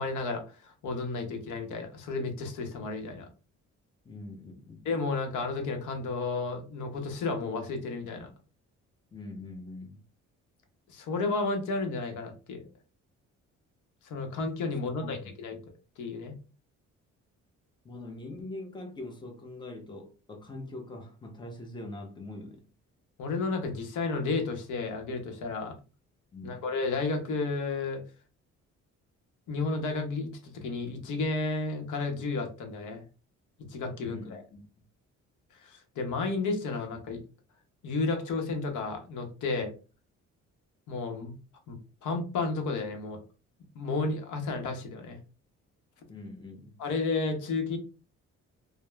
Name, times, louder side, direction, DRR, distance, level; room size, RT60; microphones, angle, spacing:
voice 1, 0.0-3.3 4.8-8.3 10.9-12.7 14.0-15.6 16.0-16.4 23.2-25.7 26.4-28.0 29.5-33.0 33.7-34.4 35.6-37.2 37.8-39.7 40.9-41.3 41.7-43.2 43.7-45.2 46.8-47.8, left 3 dB, 80° left, 0.8 m, -32 dB
voice 2, 4.0-4.8 9.1-10.0 15.0-15.3 17.8-22.6 26.3-26.7 34.0-34.7 46.1-46.8, left 2 dB, 15° left, 0.6 m, -43 dB
2.9 x 2.0 x 2.2 m
cardioid pair, 90°, 30 cm